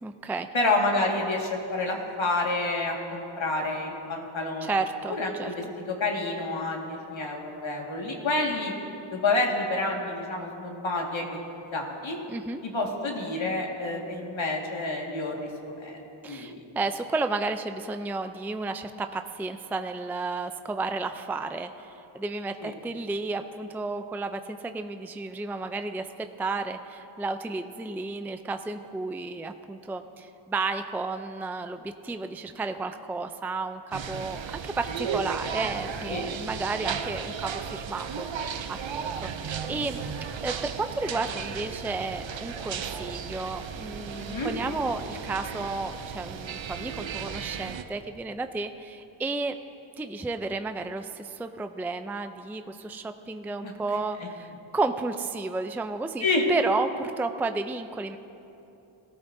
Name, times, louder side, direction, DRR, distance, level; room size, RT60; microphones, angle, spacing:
voice 1, 0.0-0.5 4.6-5.5 12.3-12.6 16.2-40.0 40.4-49.6 50.0-58.2, right 3 dB, 5° right, 8 dB, 0.4 m, -32 dB
voice 2, 0.5-4.8 5.1-8.7 9.1-11.4 11.7-12.2 12.7-15.5 15.8-16.0 16.3-16.6 22.6-22.7 36.1-36.3 44.2-44.5 53.6-53.7 56.2-56.4, left 2 dB, 70° left, 0 dB, 2.0 m, -29 dB
sound 1, 33.9-47.8, right 7 dB, 65° right, 0.7 m, -35 dB
18.5 x 14.0 x 2.7 m, 2.9 s
cardioid pair, 60°, 49 cm